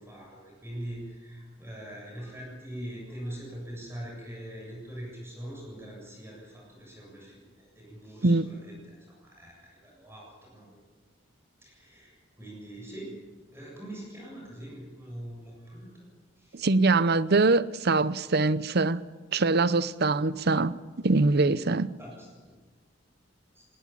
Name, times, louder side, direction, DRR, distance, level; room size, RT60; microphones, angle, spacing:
voice 1, 0.0-10.7 11.6-13.2 13.5-16.1 16.4-16.7 22.0-22.5 23.5-23.7, right 1 dB, 15° right, 7.5 m, -43 dB
voice 2, 16.5-19.0 19.3-21.9, right 3 dB, 55° right, 0.8 m, -23 dB
21.0 x 18.5 x 8.8 m
head